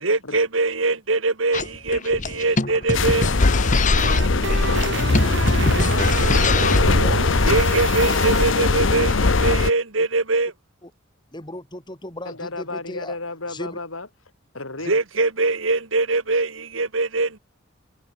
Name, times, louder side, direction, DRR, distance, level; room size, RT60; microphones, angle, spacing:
voice 1, 0.0-3.3 7.4-10.5 14.9-17.4, right 3 dB, 80° right, 2.5 m, -22 dB
sound 1, 1.5-6.9, left 3 dB, 40° left, 2.7 m, -25 dB
sound 2, 2.9-9.7, left 3 dB, 70° left, 1.0 m, -20 dB
sound 3, 3.5-8.5, right 2 dB, 60° right, 2.7 m, -27 dB
voice 2, 4.2-5.7 10.0-10.1 10.8-10.9 11.3-13.2 13.5-13.8, left 1 dB, 20° left, 3.8 m, -38 dB
voice 3, 5.7-7.2 12.3-14.1 14.5-15.0, left 2 dB, 90° left, 5.5 m, -33 dB
head